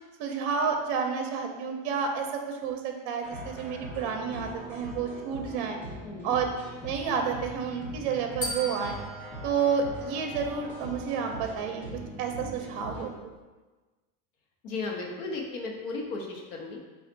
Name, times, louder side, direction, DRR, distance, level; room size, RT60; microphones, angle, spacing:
voice 1, 0.2-5.8 6.2-6.4 6.8-9.0 9.4-11.8 12.2-13.3, right 6 dB, 50° right, 4 dB, 0.6 m, -30 dB
sound 1, 3.2-13.0, equal, 5° left, 0.5 m, -42 dB
sound 2, 8.4-10.7, left 1 dB, 40° left, 0.9 m, -39 dB
voice 2, 14.6-16.8, left 3 dB, 65° left, 0 dB, 0.9 m, -35 dB
4.3 x 2.4 x 3.8 m, 1.3 s
supercardioid pair, 155°, 43 cm